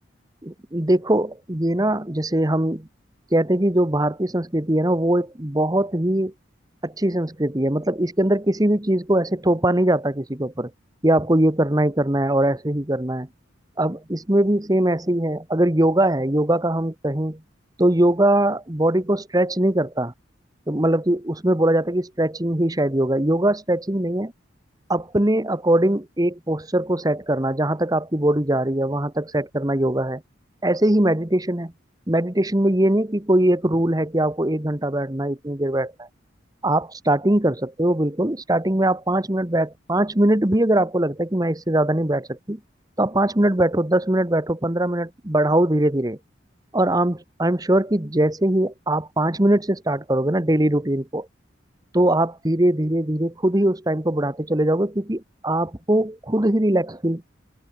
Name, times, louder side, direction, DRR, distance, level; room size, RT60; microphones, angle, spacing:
voice 1, 0.4-2.9 3.3-6.3 6.8-10.7 11.0-13.3 13.8-17.4 17.8-20.1 20.7-24.3 24.9-30.2 30.6-31.7 32.1-36.1 36.6-42.6 43.0-46.2 46.7-51.3 51.9-57.2, right 1 dB, 20° right, 1.3 m, -21 dB
head